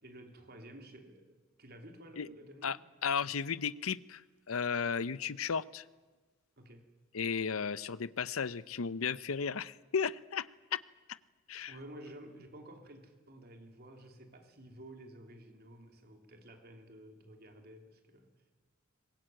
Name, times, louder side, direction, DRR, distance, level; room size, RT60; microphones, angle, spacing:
voice 1, 0.0-2.8 6.6-6.9 11.7-18.3, right 1 dB, 50° right, 4 dB, 3.2 m, -52 dB
voice 2, 3.0-4.2 4.5-5.8 7.1-10.8 11.5-11.7, left 6 dB, 80° left, 17 dB, 0.7 m, -34 dB
23.0 x 20.5 x 9.1 m, 1.3 s
head